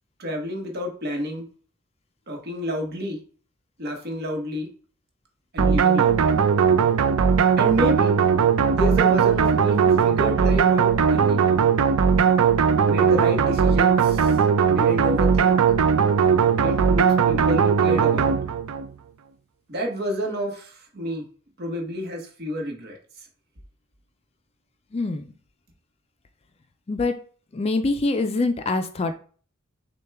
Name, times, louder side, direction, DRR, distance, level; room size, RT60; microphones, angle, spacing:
voice 1, 0.2-1.5 2.3-3.2 3.8-4.7 5.5-6.3 7.6-8.1 8.7-11.4 12.9-14.4 14.7-15.6 16.6-18.3 19.7-21.3 21.6-23.3, equal, 50° right, 2 dB, 1.0 m, -29 dB
sound 1, 5.6-18.9, right 6 dB, 85° right, 0.4 m, -19 dB
voice 2, 24.9-25.3 26.9-27.1 27.5-29.2, left 3 dB, 30° left, 7 dB, 0.3 m, -24 dB
6.4 x 2.2 x 3.4 m, 0.42 s
head